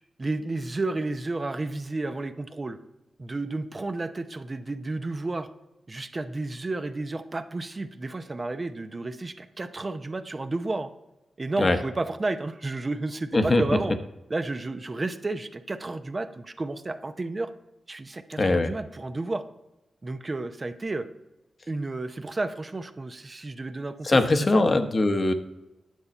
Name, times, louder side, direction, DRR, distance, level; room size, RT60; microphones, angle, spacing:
voice 1, 0.2-2.8 3.2-5.5 5.9-10.9 11.4-13.9 14.3-17.5 17.9-19.4 20.0-21.1 21.7-24.2 24.5-24.8, right 2 dB, 40° right, 8 dB, 0.7 m, -31 dB
voice 2, 18.4-18.7 24.1-25.3, left 2 dB, 45° left, 7 dB, 1.0 m, -21 dB
9.4 x 6.7 x 4.3 m, 0.98 s
supercardioid pair, 45°, 0 cm